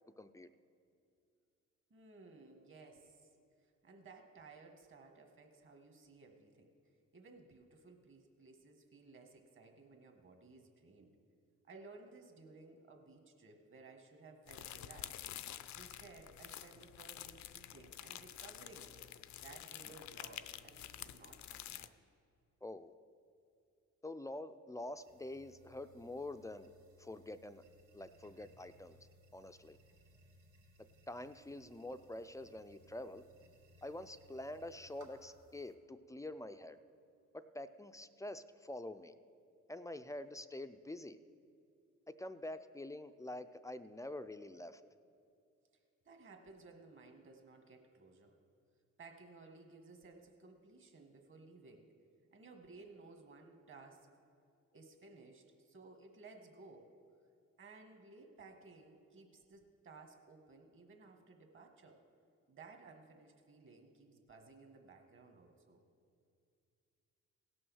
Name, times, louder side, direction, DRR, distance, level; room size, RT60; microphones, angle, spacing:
voice 1, 0.2-0.5 22.6-22.9 24.0-27.6 27.9-29.0 29.3-29.8 31.1-33.2 33.8-36.8 37.3-39.1 39.7-41.2 42.2-44.8, left 1 dB, 10° left, 10 dB, 0.4 m, -46 dB
voice 2, 1.9-3.3 3.6-6.7 7.1-11.1 11.6-15.2 15.7-18.9 19.4-22.0 46.0-48.4 49.0-51.9 52.3-54.1 54.7-56.9 57.6-62.0 62.5-65.8, right 3 dB, 40° right, 4 dB, 1.7 m, -58 dB
sound 1, 14.5-21.9, left 12 dB, 70° left, 0.5 m, -49 dB
sound 2, 24.9-35.7, equal, 75° right, 2.1 m, -65 dB
17.0 x 6.3 x 6.3 m, 2.5 s
cardioid pair, 90°, 30 cm